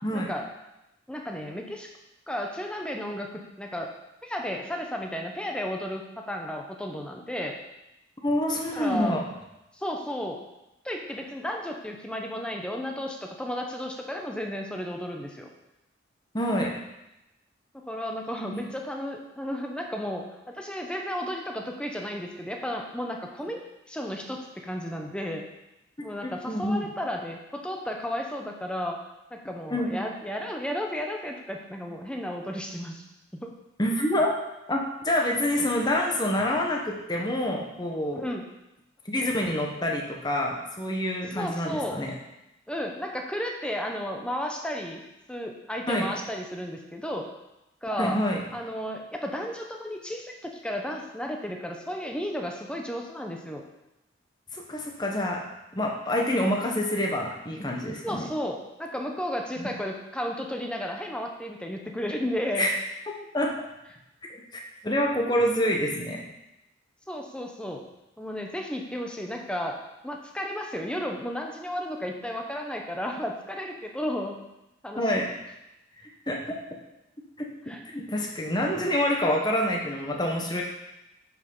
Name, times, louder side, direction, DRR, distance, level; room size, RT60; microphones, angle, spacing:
voice 1, 0.1-0.5 1.1-1.9 2.3-3.9 4.2-7.6 8.7-9.2 9.8-10.4 10.8-15.5 17.7-20.3 20.5-23.6 23.9-25.4 26.0-29.0 29.3-33.0 33.3-33.5 38.1-38.5 41.3-42.0 42.7-45.0 45.3-47.3 47.8-48.2 48.5-53.6 58.0-62.7 67.1-67.8 68.2-69.8 70.0-74.4 74.8-75.1 77.7-77.8, equal, 5° left, 2 dB, 1.0 m, -33 dB
voice 2, 8.2-9.2 16.3-16.7 18.5-18.6 26.2-26.8 29.7-30.0 33.8-34.3 34.7-38.2 39.0-42.1 45.9-46.1 48.0-48.4 54.5-55.4 55.7-58.3 59.6-59.7 62.5-62.8 63.3-63.5 64.5-66.2 75.0-75.3 76.3-76.6 77.4-80.6, left 1 dB, 20° left, 0 dB, 1.3 m, -27 dB
8.8 x 5.6 x 5.6 m, 0.92 s
head